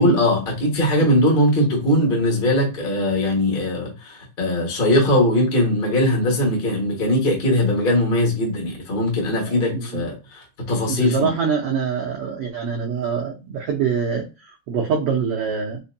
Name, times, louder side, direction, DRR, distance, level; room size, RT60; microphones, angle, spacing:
voice 1, 0.0-11.3, left 1 dB, 85° left, 0.4 m, -20 dB
voice 2, 9.5-10.1 10.9-15.8, right 6 dB, 85° right, 1.3 m, -25 dB
5.5 x 2.1 x 2.6 m
omnidirectional pair, 3.6 m